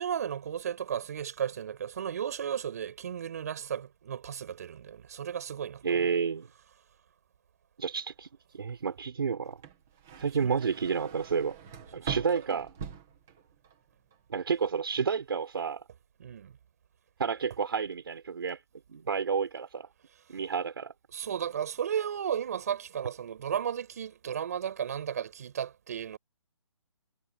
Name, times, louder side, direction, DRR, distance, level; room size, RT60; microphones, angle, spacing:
voice 1, 0.0-6.1 10.2-10.7 12.0-12.6 16.2-16.5 21.1-26.2, right 8 dB, 30° right, 6.7 m, -34 dB
voice 2, 5.8-6.5 7.8-8.3 8.5-9.6 10.2-11.6 11.9-12.7 14.3-15.8 17.2-18.6 18.9-19.9 20.3-20.9, right 6 dB, 50° right, 5.0 m, -30 dB
sound 1, 9.5-13.8 14.1-14.7, right 7 dB, 5° right, 0.4 m, -43 dB
hypercardioid pair, 180°, 16 cm